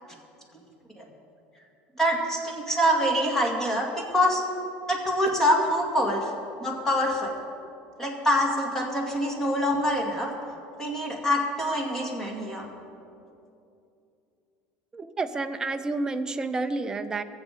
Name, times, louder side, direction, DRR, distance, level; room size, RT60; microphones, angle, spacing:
voice 1, 2.0-4.4 4.9-6.3 6.6-7.3 8.0-10.3 10.8-12.7, equal, 10° left, 0 dB, 2.1 m, -25 dB
voice 2, 14.9-17.2, right 3 dB, 15° right, 7 dB, 0.6 m, -30 dB
22.0 x 7.3 x 5.0 m, 2.6 s
cardioid pair, 145°, 5 cm